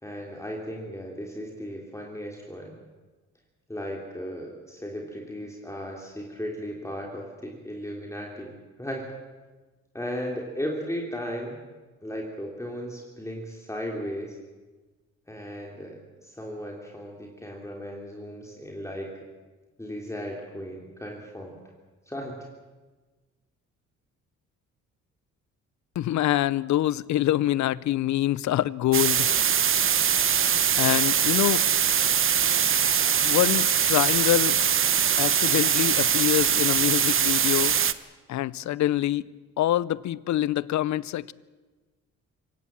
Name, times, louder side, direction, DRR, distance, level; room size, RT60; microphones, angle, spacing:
voice 1, 0.0-2.7 3.7-8.5 8.8-9.1 9.9-11.6 12.0-14.4 15.3-19.1 19.8-21.6 22.1-22.5, equal, 10° left, 3.3 m, -36 dB
voice 2, 26.0-29.3 30.8-31.7 33.2-34.6 35.2-37.8 38.3-39.3 39.6-41.3, left 13 dB, 70° left, 0.7 m, -25 dB
sound 1, 28.9-37.9, right 8 dB, 45° right, 1.0 m, -22 dB
25.5 x 17.5 x 7.6 m
cardioid pair, 90°, 30 cm